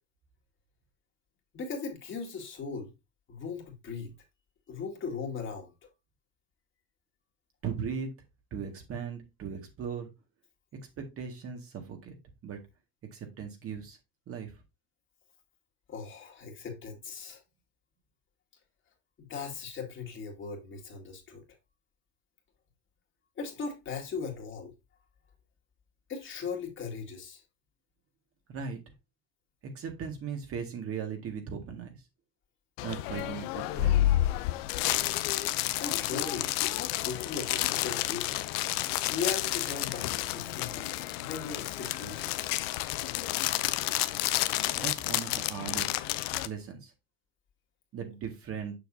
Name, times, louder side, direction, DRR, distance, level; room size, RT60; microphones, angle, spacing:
voice 1, 1.5-2.9 3.3-4.1 4.7-5.9 15.9-17.4 19.2-21.4 23.4-24.7 26.1-27.4 35.8-38.3 39.1-40.9 41.2-42.5, left 5 dB, 40° left, 2.2 m, -38 dB
voice 2, 7.6-8.1 8.5-10.1 11.0-12.2 12.4-12.6 13.1-14.0 14.3-14.5 28.5-28.8 29.6-31.9 32.8-34.2 44.7-46.0 46.4-46.9 47.9-48.7, right 6 dB, 50° right, 1.9 m, -38 dB
sound 1, 32.8-46.5, left 15 dB, 90° left, 0.6 m, -30 dB
6.8 x 5.9 x 2.7 m
supercardioid pair, 105°, 30 cm